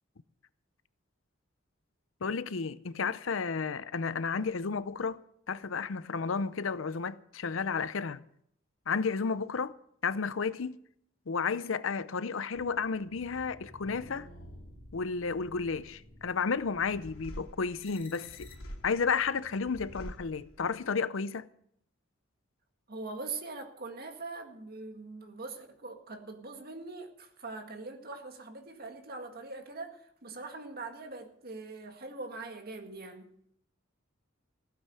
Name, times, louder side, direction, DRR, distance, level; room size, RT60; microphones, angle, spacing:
voice 1, 2.2-8.2 8.9-9.8 10.0-10.8 11.3-14.3 14.9-18.5 18.8-21.5, left 5 dB, 70° left, 0.6 m, -32 dB
sound 1, 12.5-20.9, equal, 85° left, 2.6 m, -49 dB
voice 2, 22.9-33.3, right 3 dB, 50° right, 1.8 m, -42 dB
16.0 x 8.5 x 7.8 m
head